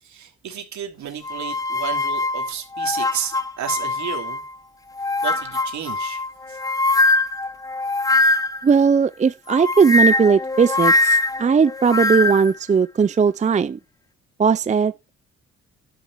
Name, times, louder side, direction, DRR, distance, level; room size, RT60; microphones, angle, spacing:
voice 1, 0.0-4.4 5.2-6.2 6.5-6.6, right 9 dB, 70° right, 3.1 m, -32 dB
sound 1, 1.2-4.5 5.0-8.7 9.5-12.5, left 2 dB, 10° left, 0.8 m, -22 dB
voice 2, 8.6-13.8 14.4-14.9, right 6 dB, 25° right, 0.5 m, -18 dB
12.0 x 6.6 x 4.6 m
cardioid pair, 90°, 30 cm